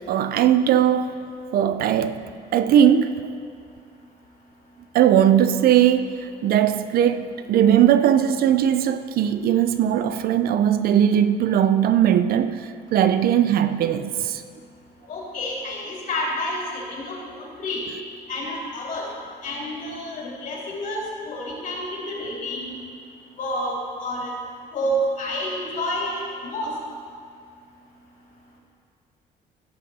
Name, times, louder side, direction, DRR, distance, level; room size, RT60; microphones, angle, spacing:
voice 1, 0.1-1.1 1.5-2.3 2.5-3.3 4.9-14.4, right 10 dB, 65° right, 0.6 m, -19 dB
voice 2, 15.1-17.8 18.3-19.1 19.4-22.8 23.4-24.3 24.7-26.7, equal, 50° left, 3.2 m, -29 dB
16.5 x 6.6 x 4.3 m
cardioid pair, 110°, 17 cm